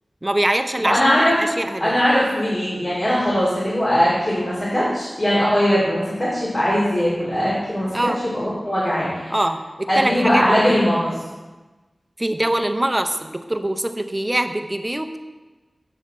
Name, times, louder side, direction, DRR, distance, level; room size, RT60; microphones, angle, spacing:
voice 1, 0.2-2.0 7.9-8.2 9.3-10.8 12.2-15.2, right 1 dB, 25° right, 8 dB, 0.6 m, -23 dB
voice 2, 0.8-1.3 1.8-7.9 8.3-9.3 9.9-11.1, equal, 45° left, -9 dB, 2.8 m, -20 dB
8.3 x 5.7 x 4.3 m, 1.2 s
cardioid pair, 45°, 0 cm